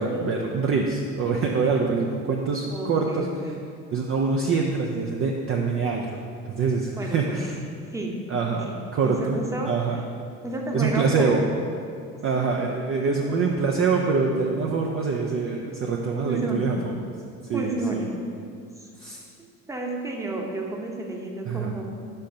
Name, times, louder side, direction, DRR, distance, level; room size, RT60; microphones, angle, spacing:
voice 1, 0.0-3.3 3.9-6.1 6.5-7.5 8.3-9.4 9.6-10.0 10.7-11.4 12.2-16.9 17.5-18.0 19.0-19.2 21.5-21.7, right 4 dB, 30° right, 1 dB, 0.5 m, -25 dB
voice 2, 2.7-3.6 6.9-7.4 7.9-8.2 8.7-8.8 9.0-9.7 10.4-11.5 13.1-13.2 16.2-16.7 17.5-18.1 18.8-18.9 19.7-21.8, right 2 dB, 5° right, 0 dB, 0.9 m, -31 dB
5.2 x 4.4 x 4.9 m, 2.3 s
hypercardioid pair, 60°, 45 cm